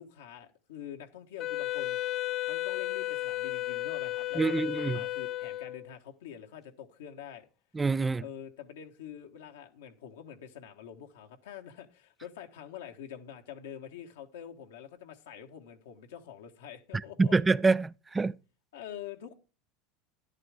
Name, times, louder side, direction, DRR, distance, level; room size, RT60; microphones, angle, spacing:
voice 1, 0.0-2.0 2.4-7.5 8.2-17.3 18.7-19.3, left 9 dB, 80° left, 1.4 m, -46 dB
Wind instrument woodwind instrument, 1.4-5.9, left 15 dB, 45° left, 0.5 m, -34 dB
voice 2, 4.4-5.0 7.7-8.2 17.2-18.4, right 4 dB, 15° right, 0.5 m, -26 dB
11.0 x 10.5 x 3.6 m
hypercardioid pair, 90°, 0 cm